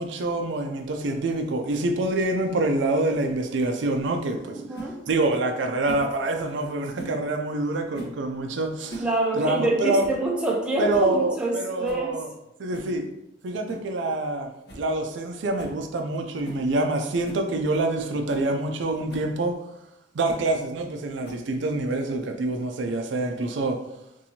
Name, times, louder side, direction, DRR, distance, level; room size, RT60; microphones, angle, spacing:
voice 1, 0.0-4.6 5.1-9.1 9.3-10.0 10.8-12.3 12.6-13.0 13.4-14.5 14.7-19.5 20.1-23.8, right 2 dB, 75° right, 5 dB, 0.4 m, -26 dB
voice 2, 4.6-5.0 9.0-12.2, right 2 dB, 5° right, -2 dB, 0.5 m, -26 dB
sound 1, 4.7-4.9 5.8-6.1 6.9-7.2 7.9-8.2 8.7-9.1 9.4-9.5 10.0-10.2 10.6-10.7 10.9-11.2 11.8-12.1 12.7-12.9 13.7-13.9 14.2-14.3 14.7-14.9 15.2-15.3 15.6-15.8 16.4-16.7 17.2-17.5 17.9-18.0 18.3-18.5 19.1-19.3 20.3-20.5 21.2-21.6, right 1 dB, 60° left, 0.8 m, -39 dB
4.1 x 2.6 x 2.7 m, 0.84 s
head